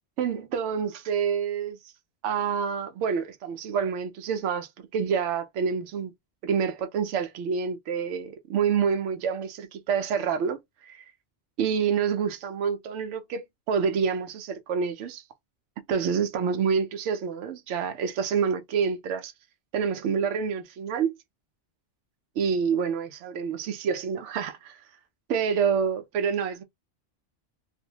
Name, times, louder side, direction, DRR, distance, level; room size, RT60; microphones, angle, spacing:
voice 1, 0.2-1.8 2.2-6.1 6.4-10.6 10.8-11.0 11.6-15.2 15.9-19.3 19.7-21.1 22.4-24.8 25.3-26.6, right 6 dB, 80° right, 0.9 m, -27 dB
2.6 x 2.1 x 2.7 m
omnidirectional pair, 1.2 m